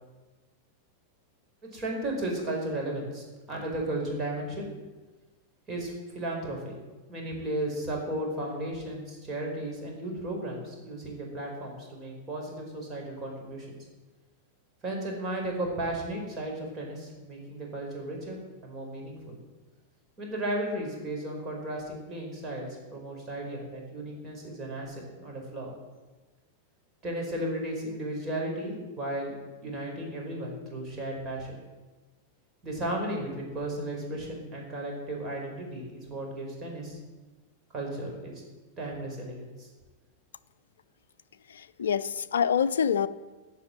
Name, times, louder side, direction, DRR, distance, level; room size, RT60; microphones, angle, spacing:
voice 1, 1.6-4.7 5.7-6.8 7.1-13.7 14.8-19.4 20.2-25.7 27.0-29.3 29.6-31.6 32.6-37.0 37.7-38.3 38.8-39.7, right 1 dB, 25° right, 0 dB, 4.9 m, -34 dB
voice 2, 41.5-43.1, left 7 dB, 65° left, 14 dB, 0.5 m, -26 dB
15.0 x 6.3 x 10.0 m, 1.2 s
figure-of-eight pair, 90°, 0 cm